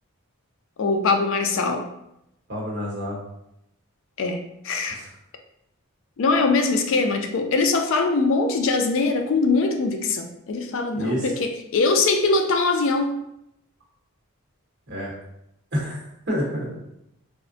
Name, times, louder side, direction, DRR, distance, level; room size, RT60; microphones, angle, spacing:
voice 1, 0.8-1.9 4.2-5.0 6.2-13.2, left 3 dB, 60° left, 4 dB, 0.3 m, -22 dB
voice 2, 2.5-3.2 4.9-5.1 10.9-11.3 14.9-15.1 15.7-16.8, equal, 45° right, -4 dB, 0.9 m, -28 dB
3.4 x 2.0 x 2.6 m, 0.82 s
head